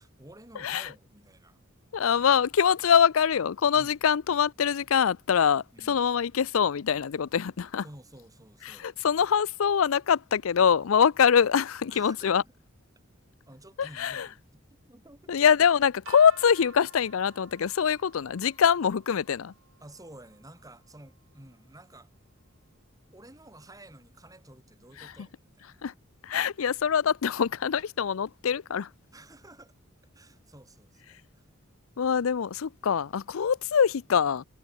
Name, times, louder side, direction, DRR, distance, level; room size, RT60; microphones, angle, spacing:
voice 1, 0.0-1.6 3.7-4.0 5.7-6.0 7.8-8.9 11.9-12.5 13.5-15.3 19.8-22.1 23.1-25.9 29.1-29.7 30.1-31.4, right 1 dB, 15° right, 5.1 m, -51 dB
voice 2, 0.6-0.9 1.9-7.8 8.6-12.4 13.8-14.3 15.3-19.5 25.0-25.1 25.8-25.9 26.2-28.9 32.0-34.4, left 7 dB, 85° left, 0.5 m, -24 dB
sound 1, 16.1-22.0, right 6 dB, 75° right, 1.6 m, -54 dB
head